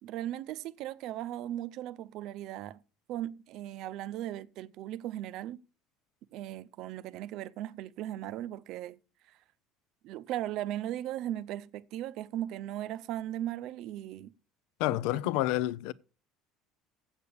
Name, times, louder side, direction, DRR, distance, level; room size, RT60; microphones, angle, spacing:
voice 1, 0.0-2.8 3.1-5.6 6.3-9.0 9.3-9.4 10.0-14.3 14.9-15.2, right 12 dB, 60° right, 0.5 m, -37 dB
voice 2, 14.8-15.9, left 16 dB, 75° left, 0.4 m, -29 dB
8.1 x 6.9 x 6.7 m
cardioid pair, 145°, 0 cm